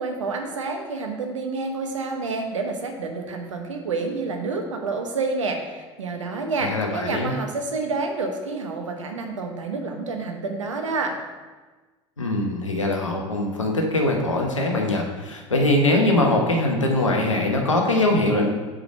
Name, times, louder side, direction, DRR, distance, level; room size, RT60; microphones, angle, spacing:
voice 1, 0.0-11.2, right 3 dB, 80° right, 4 dB, 0.9 m, -28 dB
voice 2, 6.6-7.3 12.2-18.5, left 1 dB, 90° left, 1 dB, 1.0 m, -22 dB
5.0 x 4.8 x 6.2 m, 1.3 s
figure-of-eight pair, 70°, 16 cm